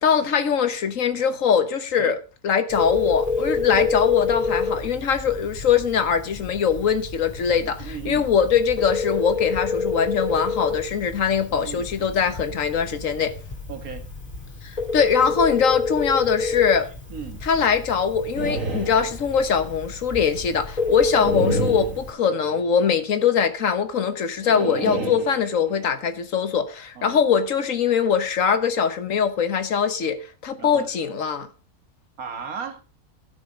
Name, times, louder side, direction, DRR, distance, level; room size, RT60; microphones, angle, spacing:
voice 1, 0.0-2.2 2.4-13.3 14.6-16.9 17.4-31.5, left 7 dB, 70° left, 1.5 m, -22 dB
Telephone, 2.7-22.1, left 4 dB, 25° left, 2.9 m, -29 dB
voice 2, 7.8-8.3 11.5-11.9 13.7-14.1 17.1-17.5 21.0-21.3 27.0-27.2 30.6-31.0 32.2-32.8, right 7 dB, 85° right, 1.9 m, -36 dB
sound 1, 18.4-19.7 21.2-22.7 24.4-25.9, right 4 dB, 65° right, 2.3 m, -30 dB
12.5 x 6.2 x 5.0 m
omnidirectional pair, 1.5 m